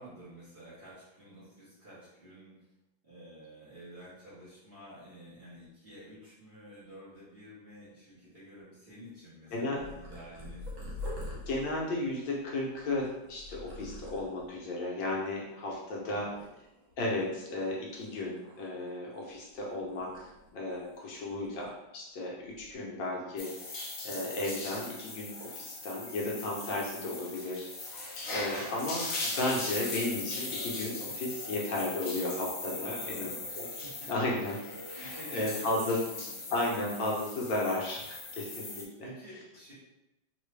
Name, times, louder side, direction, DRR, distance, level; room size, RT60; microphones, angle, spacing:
voice 1, 0.0-2.6 3.0-11.2 16.0-16.6 23.1-23.3 32.8-34.1 35.0-36.5 39.0-39.7, right 1 dB, 30° right, -10 dB, 1.5 m, -50 dB
Purr, 9.8-14.6 15.2-15.6 15.9-17.1 17.5-19.6 19.9-21.2 21.4-21.7 22.4-22.7, left 1 dB, 85° right, 2.0 m, -45 dB
voice 2, 11.5-16.3 17.0-33.3 33.6-33.7 34.1-34.6 34.9-36.0 36.5-39.0, left 2 dB, 75° left, -3 dB, 1.4 m, -34 dB
sound 1, 23.4-38.8, left 3 dB, 55° left, 1.0 m, -39 dB
4.0 x 2.9 x 3.2 m, 0.93 s
omnidirectional pair, 2.1 m